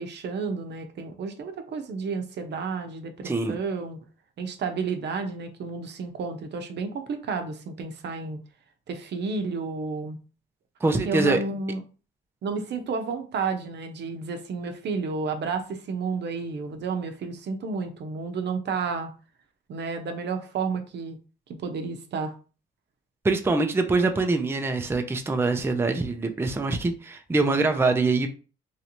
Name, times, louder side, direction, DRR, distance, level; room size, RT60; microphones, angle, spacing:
voice 1, 0.0-4.0 4.4-8.4 8.9-10.2 11.0-11.8 12.4-19.1 19.7-21.2 21.6-22.3, right 4 dB, 60° right, 0.7 m, -31 dB
voice 2, 3.2-3.6 10.8-11.4 23.2-28.3, right 3 dB, 10° right, 0.4 m, -24 dB
3.2 x 2.6 x 2.9 m
cardioid pair, 90°, 20 cm